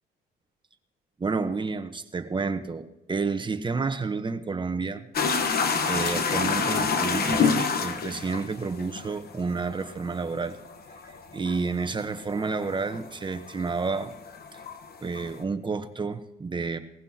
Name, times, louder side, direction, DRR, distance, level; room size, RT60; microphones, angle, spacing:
voice 1, 1.2-5.0 5.9-10.6 11.1-14.2 14.5-14.6 15.0-16.8, right 4 dB, 25° right, 8 dB, 1.0 m, -30 dB
sound 1, 5.1-13.7 13.9-15.3, left 5 dB, 50° left, 1.1 m, -27 dB
19.5 x 15.5 x 2.9 m, 0.92 s
cardioid pair, 90°, 20 cm